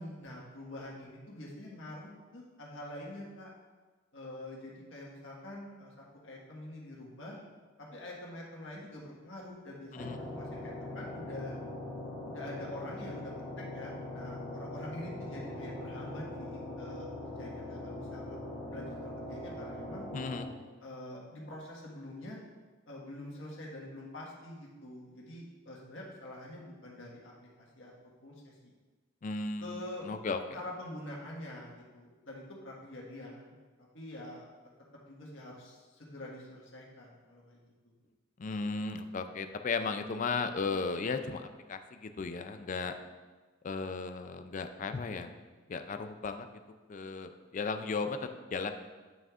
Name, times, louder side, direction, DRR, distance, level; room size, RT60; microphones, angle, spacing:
voice 1, 0.0-3.5 4.1-5.9 6.2-7.4 7.8-11.6 12.2-18.4 18.7-20.1 20.8-22.4 22.9-27.3 27.8-27.9 28.2-28.7 29.6-30.1 30.5-33.5 33.9-34.5 35.1-37.9, left 1 dB, 70° left, -3 dB, 1.6 m, -46 dB
sound 1, 10.0-20.5, left 1 dB, 10° right, 2.1 m, -41 dB
voice 2, 20.1-20.5 29.2-30.4 38.4-42.9 43.6-45.3 45.7-46.5 46.9-48.7, left 4 dB, 40° left, 8 dB, 0.4 m, -35 dB
9.1 x 6.2 x 2.5 m, 1.3 s
head